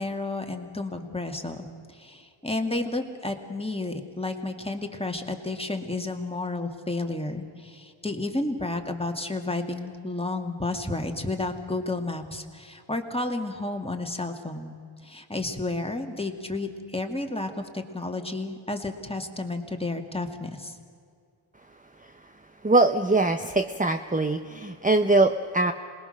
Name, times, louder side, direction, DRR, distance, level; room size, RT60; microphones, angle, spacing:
voice 1, 0.0-1.6 1.9-14.8 15.0-20.7, left 2 dB, 10° left, 4 dB, 2.1 m, -31 dB
voice 2, 22.6-25.7, right 2 dB, 15° right, 7 dB, 0.8 m, -22 dB
26.5 x 20.5 x 6.6 m, 2.3 s
wide cardioid pair, 70°, 49 cm